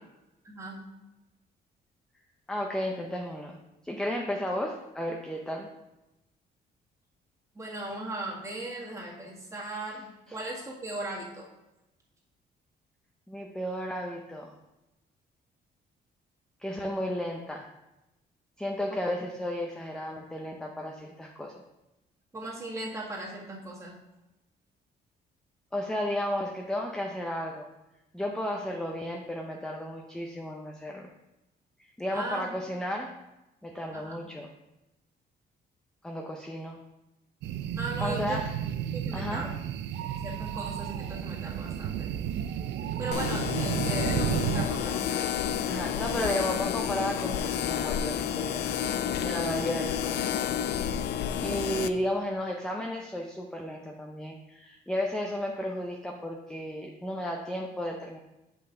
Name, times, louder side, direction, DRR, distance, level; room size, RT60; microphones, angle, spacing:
voice 1, 0.4-0.8 7.5-11.5 22.3-24.0 32.1-32.4 33.9-34.1 37.8-38.4 38.9-39.5 40.0-42.1 43.0-45.7, right 2 dB, 15° right, -4 dB, 1.8 m, -38 dB
voice 2, 2.5-3.6 3.8-5.7 10.3-10.4 13.3-14.5 16.6-17.7 18.6-21.6 25.7-27.7 28.1-31.1 31.8-33.1 33.6-34.5 36.0-36.8 38.0-38.5 39.1-39.5 45.7-48.6 49.2-50.3 51.4-58.2, left 1 dB, 5° left, 1 dB, 0.6 m, -33 dB
sound 1, 37.4-44.7, right 9 dB, 85° right, 0.5 m, -32 dB
electric sound, 43.1-51.9, left 9 dB, 70° left, 0.5 m, -30 dB
7.7 x 5.7 x 3.8 m, 0.96 s
cardioid pair, 150°, 18 cm